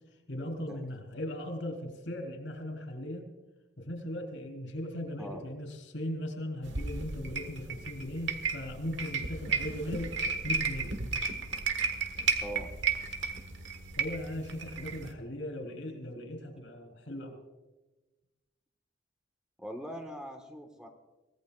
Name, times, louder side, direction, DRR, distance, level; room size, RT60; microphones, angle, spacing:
voice 1, 0.3-3.3 3.8-10.9 14.0-17.4, left 1 dB, 70° left, 3 dB, 3.8 m, -38 dB
sound 1, 6.6-15.1, right 5 dB, 70° right, 1.4 m, -34 dB
voice 2, 19.6-20.9, equal, 5° right, 2 dB, 1.3 m, -41 dB
24.0 x 17.5 x 2.4 m, 1.1 s
head